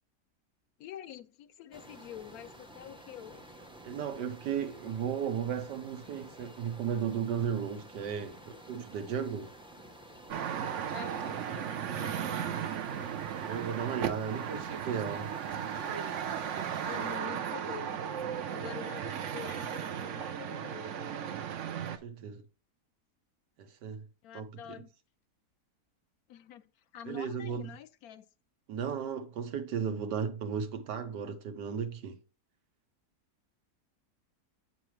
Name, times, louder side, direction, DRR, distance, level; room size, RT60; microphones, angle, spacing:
voice 1, 0.8-3.6 10.9-12.6 16.8-18.0 18.5-21.4 24.2-24.9 26.3-28.3, left 10 dB, 70° left, 1.0 m, -47 dB
sound 1, 1.7-17.2, right 1 dB, 5° right, 0.4 m, -52 dB
voice 2, 3.8-9.5 13.5-15.3 21.9-22.4 23.6-24.0 24.3-24.5 27.1-27.7 28.7-32.2, right 7 dB, 90° right, 1.5 m, -35 dB
sound 2, 10.3-22.0, right 8 dB, 60° right, 0.8 m, -36 dB
7.8 x 6.7 x 3.2 m
omnidirectional pair, 1.8 m